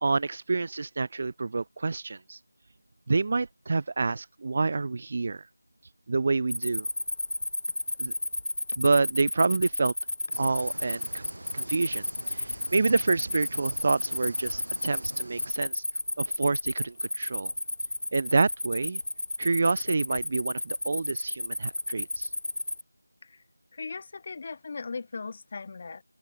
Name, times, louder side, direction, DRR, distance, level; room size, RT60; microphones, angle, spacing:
voice 1, 0.0-2.4 3.1-5.4 6.1-6.9 8.0-8.1 8.8-9.9 10.4-11.2 11.5-15.8 16.2-17.5 18.1-19.0 19.4-22.3, right 3 dB, 30° right, 0.3 m, -28 dB
Cricket, 6.5-22.8, left 1 dB, 65° left, 1.1 m, -32 dB
sound 1, 10.3-15.5, right 1 dB, 60° right, 4.3 m, -44 dB
voice 2, 23.7-26.0, left 4 dB, 25° left, 0.8 m, -38 dB
figure-of-eight pair, 175°, 0 cm